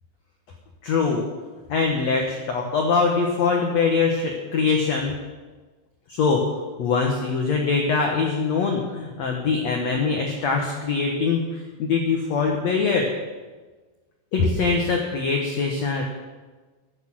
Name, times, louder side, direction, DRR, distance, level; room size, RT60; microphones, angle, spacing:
voice 1, 0.8-1.2 1.7-5.1 6.1-6.4 6.8-13.1 14.3-16.0, left 4 dB, 80° left, 2 dB, 1.5 m, -23 dB
12.0 x 11.5 x 6.2 m, 1.3 s
omnidirectional pair, 5.0 m